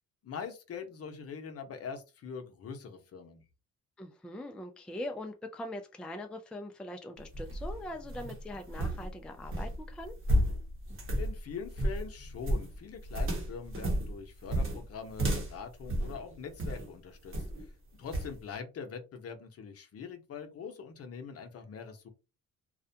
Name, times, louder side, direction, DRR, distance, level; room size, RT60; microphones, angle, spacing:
voice 1, 0.2-3.4 11.2-22.1, left 6 dB, 50° left, 5 dB, 0.7 m, -43 dB
voice 2, 4.0-10.1, left 1 dB, 5° left, 4 dB, 0.4 m, -42 dB
Getting down from stairs, 7.2-16.9 17.3-17.7 18.1-18.4, equal, 45° right, 1.0 m, -33 dB
2.4 x 2.1 x 2.7 m, 0.29 s
cardioid pair, 90°, 30 cm